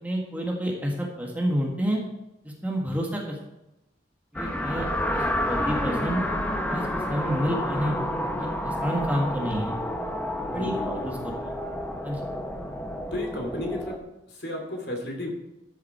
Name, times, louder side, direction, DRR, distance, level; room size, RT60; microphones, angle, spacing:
voice 1, 0.0-2.0 2.4-3.4 4.3-6.2 6.7-6.8 7.1-8.0 8.4-9.8 10.5-11.3 12.0-12.2, equal, 10° right, -1 dB, 1.6 m, -29 dB
sound 1, 4.3-14.0, left 1 dB, 10° left, 1.0 m, -30 dB
voice 2, 10.5-11.0 13.1-14.0 14.3-15.3, left 1 dB, 60° left, 2 dB, 2.9 m, -33 dB
13.0 x 7.3 x 4.4 m, 0.95 s
head